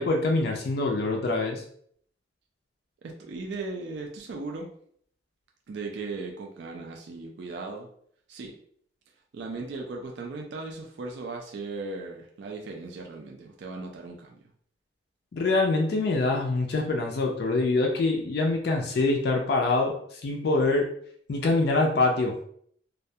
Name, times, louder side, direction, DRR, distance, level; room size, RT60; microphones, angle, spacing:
voice 1, 0.0-1.6 15.3-20.9 21.3-22.3, left 2 dB, 55° left, 1 dB, 0.3 m, -25 dB
voice 2, 3.0-4.7 5.7-7.9 8.3-8.5 9.3-14.4, right 3 dB, 60° right, 1 dB, 0.3 m, -37 dB
2.3 x 2.1 x 2.7 m, 0.63 s
head